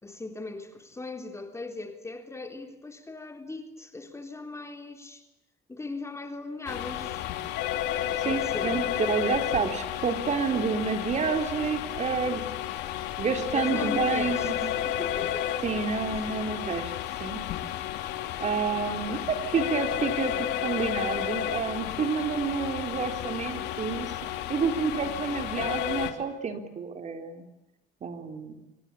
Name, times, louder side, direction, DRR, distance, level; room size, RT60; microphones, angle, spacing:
voice 1, 0.0-5.3 5.7-7.2 8.2-8.9 13.5-15.5 18.9-19.3, left 3 dB, 15° left, 3.6 m, -39 dB
sound 1, 6.7-26.1, left 11 dB, 90° left, 2.8 m, -32 dB
voice 2, 8.2-8.8 9.1-12.4 13.2-14.7 15.6-16.9 17.2-17.4 18.4-24.1 24.5-27.4 28.0-28.7, right 5 dB, 45° right, 3.8 m, -29 dB
26.5 x 24.5 x 8.5 m
cardioid pair, 110°, 17 cm